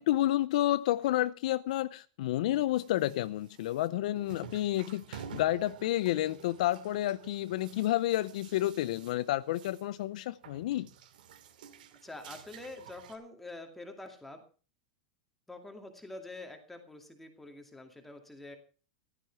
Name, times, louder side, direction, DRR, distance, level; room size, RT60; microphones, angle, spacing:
voice 1, 0.0-10.9, left 14 dB, 55° left, 0.6 m, -30 dB
sound 1, 2.7-10.0 10.3-13.2, right 7 dB, 75° right, 2.6 m, -51 dB
voice 2, 12.0-14.4 15.5-18.6, left 2 dB, 5° left, 2.3 m, -46 dB
15.0 x 12.5 x 4.6 m
supercardioid pair, 170°, 5 cm